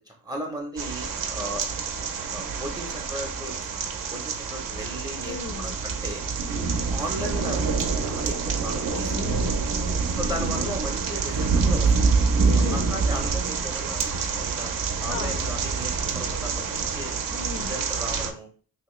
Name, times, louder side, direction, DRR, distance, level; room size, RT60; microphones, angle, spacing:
voice 1, 0.1-1.7 2.3-3.6 4.1-6.2 6.9-9.1 10.2-12.2 12.7-14.0 14.3-14.7 15.0-17.2 17.6-18.5, equal, 10° right, 1 dB, 0.7 m, -36 dB
sound 1, 0.8-18.3, right 4 dB, 60° right, 0.6 m, -26 dB
voice 2, 5.3-5.7 8.9-10.1 12.5-12.9 15.0-15.4 17.3-17.8, left 5 dB, 45° left, 7 dB, 0.6 m, -36 dB
2.9 x 2.8 x 3.1 m, 0.41 s
cardioid pair, 90°, 38 cm